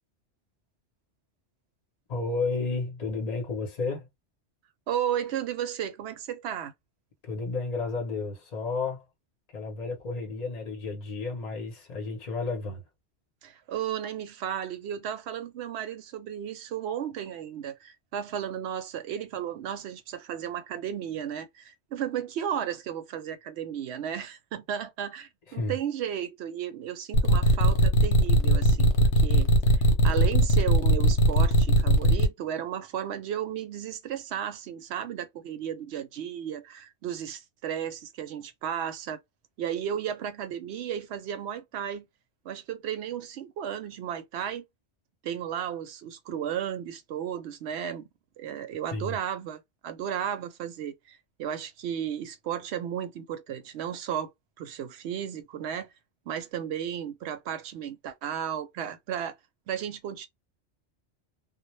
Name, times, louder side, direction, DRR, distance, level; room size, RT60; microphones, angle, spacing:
voice 1, 2.1-4.1 7.2-9.0 9.5-12.8 25.5-25.7 48.9-49.2, left 3 dB, 40° left, 0.8 m, -32 dB
voice 2, 4.9-6.7 13.4-29.5 30.0-39.2 39.6-42.1 42.4-44.6 45.2-48.0 48.4-54.3 54.6-55.9 56.3-59.3 59.7-60.3, right 9 dB, 75° right, 0.8 m, -34 dB
sound 1, 27.1-32.3, right 1 dB, 85° left, 1.0 m, -19 dB
2.1 x 2.1 x 2.9 m
omnidirectional pair, 1.2 m